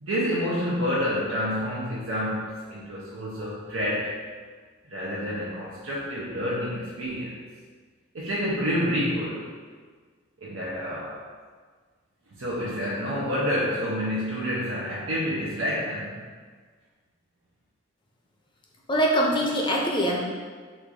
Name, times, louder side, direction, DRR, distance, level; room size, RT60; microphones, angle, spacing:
voice 1, 0.0-4.2 4.9-7.4 8.1-9.5 10.4-11.2 12.3-16.2, equal, 80° right, -7 dB, 0.7 m, -28 dB
voice 2, 18.9-20.2, equal, 25° left, -1 dB, 0.6 m, -23 dB
4.2 x 2.6 x 4.7 m, 1.6 s
head